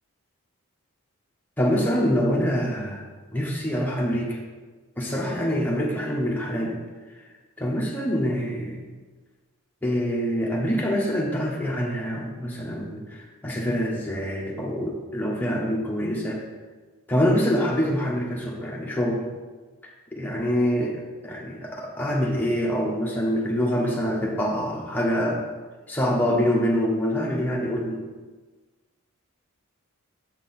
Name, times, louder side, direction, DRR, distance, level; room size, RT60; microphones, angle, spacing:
voice 1, 1.6-3.1 3.3-4.4 5.0-6.8 7.2-7.3 7.6-8.8 9.8-16.4 17.1-19.3 19.8-25.4 25.9-28.0, equal, 10° left, -3 dB, 1.1 m, -25 dB
6.9 x 5.6 x 4.3 m, 1.3 s
head